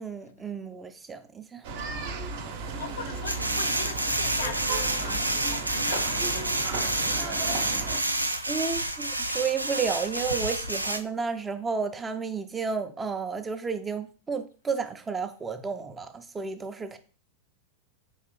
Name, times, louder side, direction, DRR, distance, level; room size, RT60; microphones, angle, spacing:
voice 1, 0.0-1.6 2.6-2.8 8.5-17.0, right 5 dB, 15° right, 0.4 m, -32 dB
sound 1, 1.6-8.0, right 4 dB, 50° right, 0.7 m, -34 dB
voice 2, 2.8-7.9 8.3-8.5, left 6 dB, 65° left, 0.4 m, -41 dB
sound 2, 3.3-11.0, right 1 dB, 85° right, 0.3 m, -29 dB
4.7 x 3.2 x 3.1 m
figure-of-eight pair, 90°, 0 cm